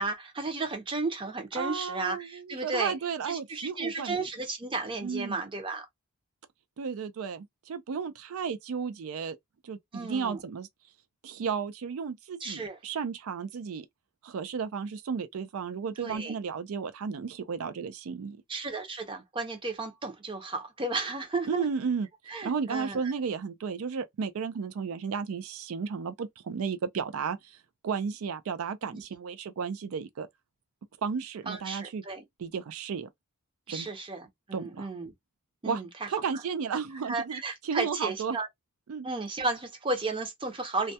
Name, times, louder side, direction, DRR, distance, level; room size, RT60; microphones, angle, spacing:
voice 1, 0.0-3.0 3.3-5.9 9.9-10.4 12.4-12.8 16.0-16.3 18.5-21.7 22.3-23.0 28.9-29.0 31.5-32.2 33.7-35.1 35.6-36.1 37.1-38.5 39.0-40.9, right 3 dB, 20° right, 0.6 m, -33 dB
voice 2, 1.6-4.2 5.0-5.4 6.8-9.4 9.6-10.7 11.2-13.9 14.2-18.4 21.5-22.1 22.4-27.6 27.8-30.3 31.0-32.0 32.4-33.1 33.7-33.9 34.5-34.9 35.7-35.8 36.1-38.4 38.9-39.1, right 6 dB, 70° right, 0.4 m, -33 dB
2.3 x 2.1 x 2.7 m
head